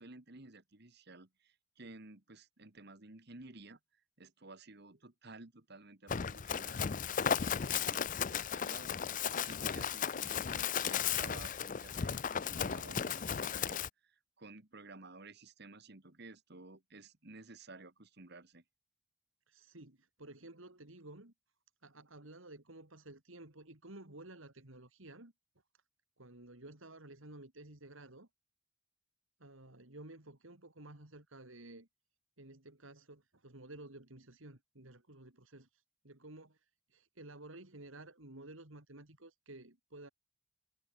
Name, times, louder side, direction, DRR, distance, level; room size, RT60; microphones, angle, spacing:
voice 1, 0.0-3.8 4.2-18.6, right 2 dB, 50° right, 1.8 m, -54 dB
Run, 6.1-13.9, left 7 dB, 40° left, 0.5 m, -35 dB
voice 2, 19.5-21.3 21.8-25.3 26.2-28.3 29.4-31.9 32.4-35.7 36.0-36.6 36.9-40.1, right 2 dB, 70° right, 2.9 m, -53 dB
head